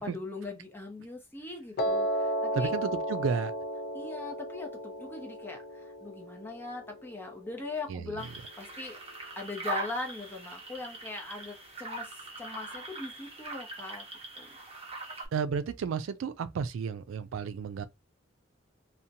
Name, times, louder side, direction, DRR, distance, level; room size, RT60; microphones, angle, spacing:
voice 1, 0.0-2.7 3.9-9.0 9.4-14.1 14.4-14.6, left 3 dB, 10° left, 0.7 m, -41 dB
Piano, 1.8-7.9, right 1 dB, 55° left, 0.5 m, -34 dB
voice 2, 2.5-3.5 7.9-8.2 15.3-17.9, right 6 dB, 85° right, 0.3 m, -32 dB
sound 1, 8.2-15.3, right 2 dB, 30° right, 0.8 m, -41 dB
2.7 x 2.1 x 2.6 m
head